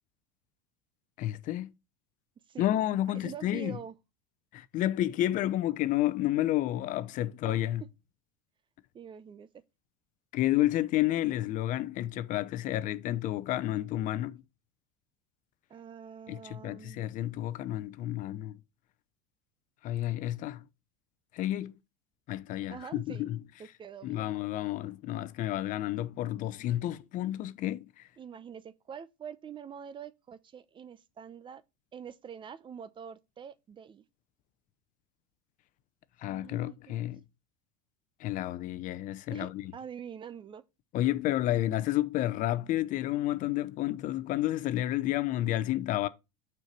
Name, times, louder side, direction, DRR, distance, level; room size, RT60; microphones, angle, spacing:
voice 1, 1.2-1.7 2.6-3.8 4.5-7.8 10.3-14.4 16.3-18.5 19.8-20.6 21.3-21.7 22.3-23.4 24.0-28.1 36.2-37.2 38.2-39.6 40.9-46.1, left 14 dB, 50° left, 0.7 m, -30 dB
voice 2, 2.5-2.8 3.1-3.9 8.9-9.5 15.7-17.1 22.7-23.3 23.6-24.3 28.2-31.6 31.9-34.0 36.2-37.0 39.3-40.6, right 8 dB, 30° right, 0.7 m, -45 dB
6.3 x 4.5 x 5.3 m
supercardioid pair, 100°, 18 cm